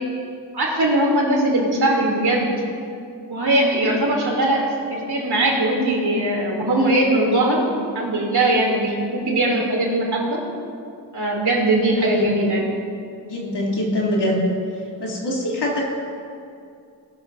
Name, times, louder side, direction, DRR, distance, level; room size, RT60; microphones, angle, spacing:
voice 1, 0.5-2.5 3.3-4.7 4.9-7.6 8.0-10.4 11.1-12.6, right 1 dB, 60° right, -2 dB, 3.5 m, -20 dB
voice 2, 3.6-4.2 12.0-12.2 13.3-14.4 15.0-15.8, left 1 dB, 65° left, -4 dB, 3.4 m, -24 dB
19.0 x 11.5 x 2.8 m, 2.5 s
cardioid pair, 50°, 43 cm